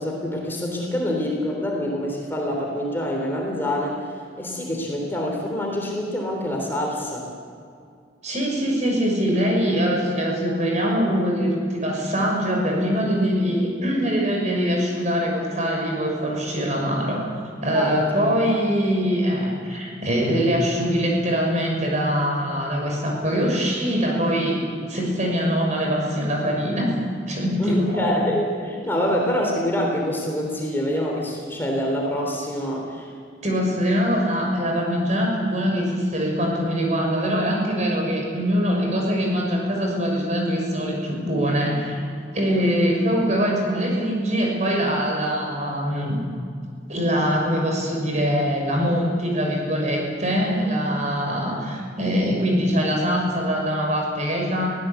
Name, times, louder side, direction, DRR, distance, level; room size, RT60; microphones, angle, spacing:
voice 1, 0.0-4.1 4.4-7.3 17.7-17.9 18.5-18.6 27.6-33.1, equal, 10° left, -1 dB, 3.4 m, -26 dB
voice 2, 8.2-17.2 17.6-24.6 24.9-26.9 27.3-28.0 33.4-42.0 42.3-46.2 46.9-54.7, equal, 40° right, 0 dB, 6.4 m, -23 dB
23.5 x 17.0 x 8.3 m, 2.3 s
head